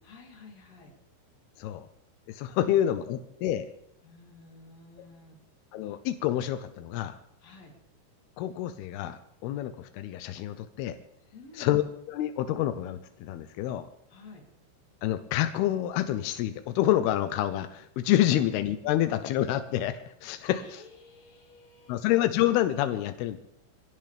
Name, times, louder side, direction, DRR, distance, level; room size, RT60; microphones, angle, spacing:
voice 1, 0.0-0.9 2.5-2.6 4.0-5.4 7.4-7.7 11.3-11.7 14.1-14.4 20.5-22.0, left 3 dB, 40° left, -2 dB, 4.0 m, -51 dB
voice 2, 2.3-3.7 5.7-7.2 8.4-11.0 11.6-11.8 12.1-13.9 15.0-20.8 21.9-23.4, left 13 dB, 85° left, 10 dB, 2.3 m, -28 dB
24.5 x 16.5 x 3.5 m, 0.76 s
omnidirectional pair, 5.4 m